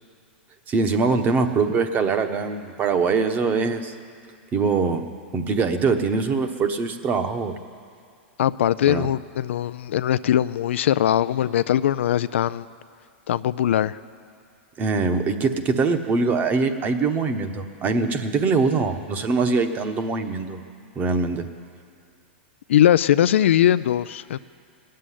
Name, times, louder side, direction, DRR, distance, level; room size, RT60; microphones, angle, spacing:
voice 1, 0.7-3.9 4.5-5.0 5.3-7.6 8.9-9.1 14.8-20.6 21.0-21.5, right 4 dB, 25° right, 8 dB, 1.1 m, -23 dB
voice 2, 8.4-12.7 13.3-14.0 22.7-24.4, left 11 dB, 80° left, 14 dB, 0.4 m, -20 dB
18.5 x 7.7 x 10.0 m, 2.4 s
hypercardioid pair, 130°, 6 cm